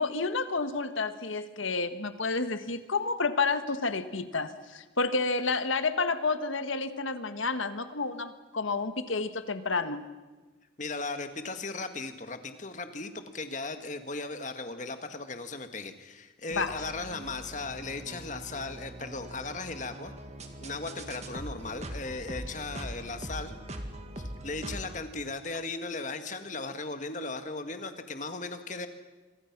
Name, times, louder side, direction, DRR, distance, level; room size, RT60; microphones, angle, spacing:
voice 1, 0.0-10.0 16.5-16.7, left 4 dB, 85° left, 10 dB, 1.6 m, -30 dB
voice 2, 10.8-20.1 20.6-23.5 24.2-28.9, left 3 dB, 40° left, 8 dB, 1.8 m, -37 dB
sound 1, 16.5-25.0, right 1 dB, 35° right, 2.1 m, -42 dB
27.0 x 24.0 x 6.1 m, 1.2 s
head